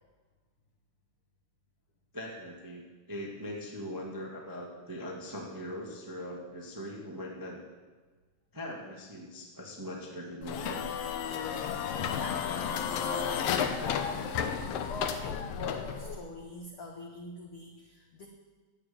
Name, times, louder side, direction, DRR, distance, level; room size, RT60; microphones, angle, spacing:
voice 1, 2.1-7.6 8.5-10.8, equal, 10° right, -1 dB, 0.9 m, -41 dB
sound 1, 10.4-16.2, left 7 dB, 70° left, 1.6 m, -32 dB
voice 2, 11.9-18.3, left 3 dB, 50° left, -1 dB, 1.9 m, -43 dB
12.0 x 8.9 x 8.6 m, 1.3 s
omnidirectional pair, 3.7 m